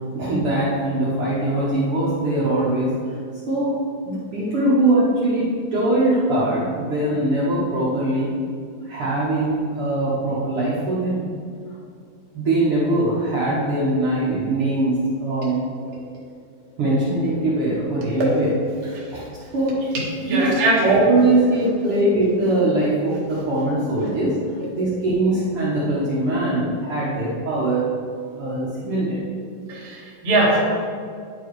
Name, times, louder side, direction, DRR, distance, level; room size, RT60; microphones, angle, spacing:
voice 1, 0.1-3.2 3.5-3.7 4.0-8.3 8.8-11.2 12.3-15.6 16.8-18.5 18.8-19.2 19.5-19.7 20.3-20.5 20.8-27.9 28.4-29.2, right 2 dB, 60° right, -8 dB, 1.5 m, -21 dB
voice 2, 18.9-19.5 19.9-21.0 21.6-21.7 24.6-24.7 29.7-30.6, right 2 dB, 40° right, -6 dB, 0.9 m, -23 dB
10.5 x 4.6 x 4.7 m, 2.2 s
omnidirectional pair, 4.1 m